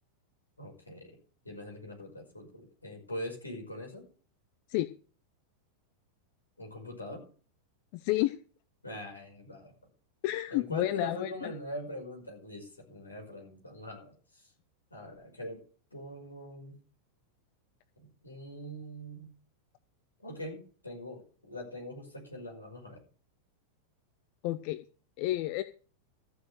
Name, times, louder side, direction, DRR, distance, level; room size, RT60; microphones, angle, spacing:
voice 1, 0.6-1.1 1.4-4.1 6.6-7.2 8.8-9.7 10.5-14.5 14.9-15.6 15.9-16.8 18.0-19.3 20.2-23.0, equal, 80° left, 0 dB, 5.4 m, -43 dB
voice 2, 7.9-8.4 10.2-11.5 24.4-24.8 25.2-25.6, left 16 dB, 45° left, 13 dB, 0.6 m, -30 dB
14.5 x 6.5 x 6.5 m, 0.40 s
figure-of-eight pair, 90°, 0 cm